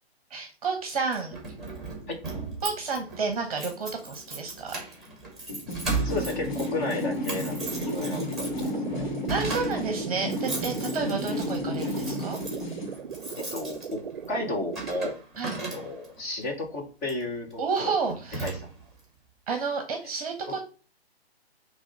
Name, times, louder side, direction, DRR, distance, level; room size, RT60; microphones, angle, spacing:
voice 1, 0.3-1.4 2.6-4.8 9.3-12.4 15.4-15.6 17.6-18.5 19.5-20.6, right 5 dB, 35° right, 5 dB, 0.9 m, -30 dB
Keys jangling, 0.9-16.2 17.0-17.3 17.7-17.8 18.1-19.0, right 3 dB, ahead, 1.8 m, -37 dB
sound 1, 5.5-13.0, left 1 dB, 45° left, 1.6 m, -32 dB
voice 2, 6.0-9.1 13.4-14.0 14.3-15.2 15.7-17.9 18.4-18.7 20.5-20.6, left 2 dB, 15° left, 1 dB, 0.8 m, -33 dB
sound 2, 7.6-15.1, right 7 dB, 60° right, 0.5 m, -39 dB
6.0 x 3.2 x 5.3 m, 0.37 s
figure-of-eight pair, 130°, 31 cm